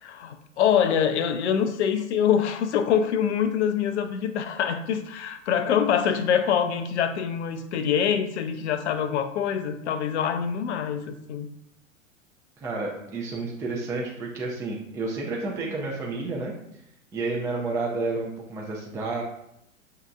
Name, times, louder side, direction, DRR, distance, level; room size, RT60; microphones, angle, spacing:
voice 1, 0.0-11.0 11.3-11.5, left 8 dB, 55° left, 9 dB, 0.6 m, -25 dB
voice 2, 12.6-16.5 17.1-19.2, right 3 dB, 10° right, -3 dB, 0.4 m, -30 dB
6.4 x 2.8 x 2.4 m, 0.79 s
figure-of-eight pair, 95°, 40 cm